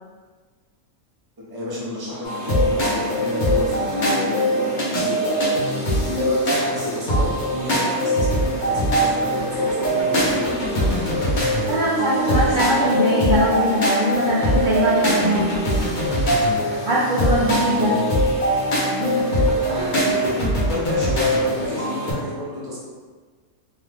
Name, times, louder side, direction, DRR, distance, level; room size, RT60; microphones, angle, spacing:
voice 1, 1.4-5.7 6.0-11.6 12.0-13.0 17.6-18.2 19.6-20.3 20.7-22.8, left 1 dB, 25° right, -7 dB, 0.5 m, -30 dB
sound 1, 2.2-22.1, equal, 45° left, 0.6 m, -22 dB
voice 2, 11.7-15.6 16.8-18.0 18.9-19.2, equal, 75° right, -8 dB, 0.4 m, -21 dB
2.8 x 2.3 x 3.3 m, 1.5 s
omnidirectional pair, 1.5 m